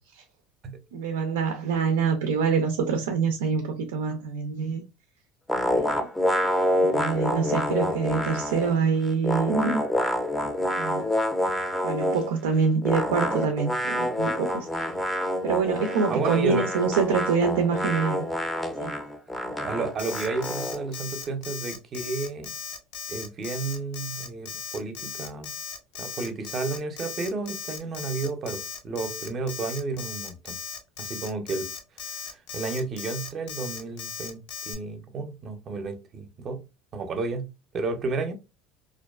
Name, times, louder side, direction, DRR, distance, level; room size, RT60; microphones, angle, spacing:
voice 1, 0.9-4.8 5.7-5.9 6.8-9.8 10.8-11.0 11.8-14.8 15.4-18.3 18.8-18.9, right 5 dB, 90° right, 0.4 m, -25 dB
sound 1, 5.5-8.8 9.0-12.3 12.8-20.9, left 1 dB, 10° left, 0.5 m, -27 dB
voice 2, 16.1-16.7 19.6-22.5 23.1-25.5 26.0-30.6 31.0-31.7 32.0-36.6 36.9-37.5 37.7-38.3, right 3 dB, 40° right, 0.6 m, -32 dB
Alarm, 20.0-34.7, left 6 dB, 75° left, 0.6 m, -37 dB
2.4 x 2.2 x 2.3 m
supercardioid pair, 100°, 0 cm